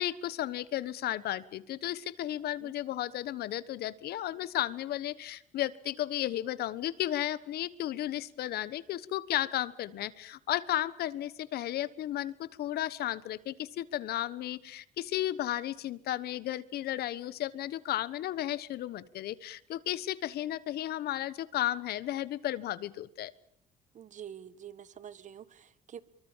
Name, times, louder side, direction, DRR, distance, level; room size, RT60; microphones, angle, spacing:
voice 1, 0.0-23.3, left 13 dB, 70° left, 17 dB, 1.2 m, -34 dB
voice 2, 23.9-26.0, right 9 dB, 45° right, 16 dB, 1.4 m, -47 dB
25.0 x 23.5 x 7.4 m, 0.71 s
cardioid pair, 110°, 17 cm